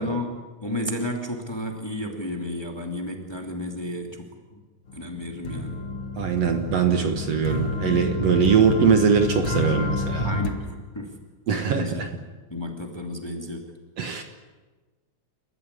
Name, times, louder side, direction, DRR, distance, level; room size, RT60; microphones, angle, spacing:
voice 1, 0.0-4.6 4.9-5.8 10.2-11.2 11.6-12.0 12.5-13.7, left 1 dB, 10° left, 2 dB, 2.3 m, -32 dB
sound 1, 4.9-10.5, left 2 dB, 50° left, 2.5 m, -29 dB
voice 2, 6.2-10.3 11.5-12.1 14.0-14.2, right 6 dB, 60° right, 5 dB, 2.3 m, -21 dB
29.5 x 14.0 x 9.8 m, 1.3 s
omnidirectional pair, 3.6 m